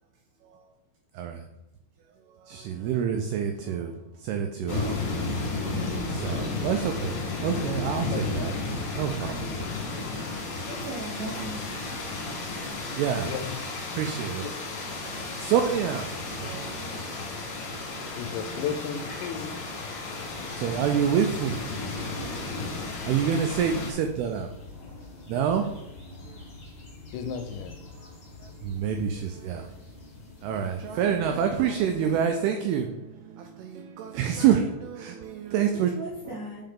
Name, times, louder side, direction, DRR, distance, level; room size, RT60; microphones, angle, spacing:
voice 1, 2.5-3.9 4.2-5.3 5.6-8.5 8.9-9.5 12.5-12.6 13.0-13.3 13.9-14.5 15.0-17.1 17.6-17.7 18.0-18.1 20.6-22.2 23.1-24.5 25.3-25.7 26.3-26.4 28.6-29.7 30.4-35.9, right 8 dB, 90° right, 5 dB, 2.2 m, -28 dB
sound 1, 4.7-23.9, left 3 dB, 60° left, 2.1 m, -33 dB
voice 2, 7.7-8.7 10.4-10.6 13.2-13.6 14.2-14.5 18.2-19.5 23.0-23.4 27.1-27.8, left 7 dB, 85° left, 8 dB, 2.7 m, -35 dB
voice 3, 9.9-10.4 10.7-11.6 35.7-36.6, right 2 dB, 70° right, -8 dB, 1.7 m, -37 dB
sound 2, 20.2-32.2, left 3 dB, 45° left, 1.8 m, -46 dB
5.6 x 5.3 x 3.7 m, 0.91 s
omnidirectional pair, 5.1 m